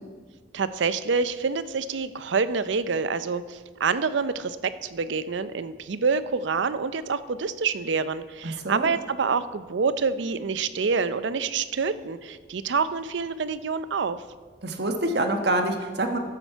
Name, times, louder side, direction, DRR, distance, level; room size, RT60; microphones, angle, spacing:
voice 1, 0.5-14.2, right 5 dB, 80° right, 14 dB, 0.5 m, -27 dB
voice 2, 8.4-8.9 14.6-16.2, right 1 dB, 60° right, 5 dB, 1.2 m, -26 dB
14.0 x 8.6 x 4.5 m, 1.5 s
head